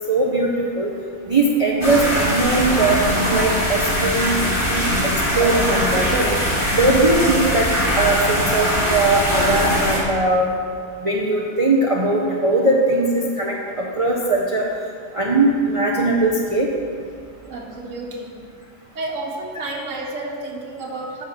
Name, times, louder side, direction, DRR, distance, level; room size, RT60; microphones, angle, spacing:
voice 1, 0.1-0.5 0.7-0.9 1.3-4.3 4.7-6.4 6.7-7.7 7.9-10.5 11.0-13.1 13.4-14.6 15.1-16.7, right 2 dB, 30° right, -3 dB, 0.8 m, -20 dB
sound 1, 1.8-10.0, equal, 40° left, 2.5 m, -21 dB
voice 2, 17.5-18.4 18.9-21.2, right 2 dB, 75° right, -2 dB, 1.6 m, -31 dB
8.1 x 6.9 x 6.2 m, 2.2 s
omnidirectional pair, 1.3 m